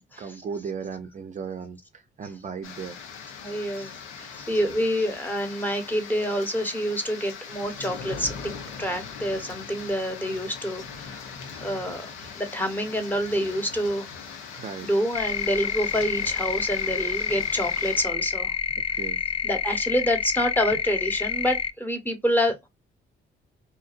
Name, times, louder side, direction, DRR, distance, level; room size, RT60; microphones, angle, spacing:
voice 1, 0.0-3.0 14.6-14.9 18.9-19.2, right 6 dB, 40° right, 0.5 m, -36 dB
sound 1, 2.6-18.0, left 6 dB, 90° left, 0.7 m, -40 dB
voice 2, 3.4-8.5 8.8-11.3 11.5-14.1 14.5-18.5 19.4-22.7, equal, 10° left, 1.0 m, -27 dB
sound 2, 15.1-21.7, left 7 dB, 30° left, 0.4 m, -28 dB
2.9 x 2.6 x 2.4 m
cardioid pair, 90°, 20 cm